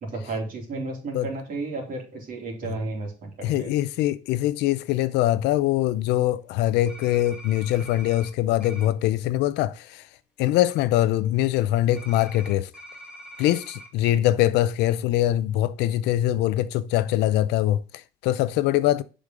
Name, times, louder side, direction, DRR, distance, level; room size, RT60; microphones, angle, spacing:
voice 1, 0.0-3.7, right 3 dB, 55° right, 2.9 m, -33 dB
voice 2, 3.4-10.1 10.4-12.7 13.4-19.0, left 14 dB, 85° left, 0.5 m, -23 dB
sound 1, 6.9-8.3 8.6-8.9 11.9-13.9, equal, 5° right, 2.0 m, -44 dB
6.7 x 5.2 x 3.7 m
cardioid pair, 110°, 17 cm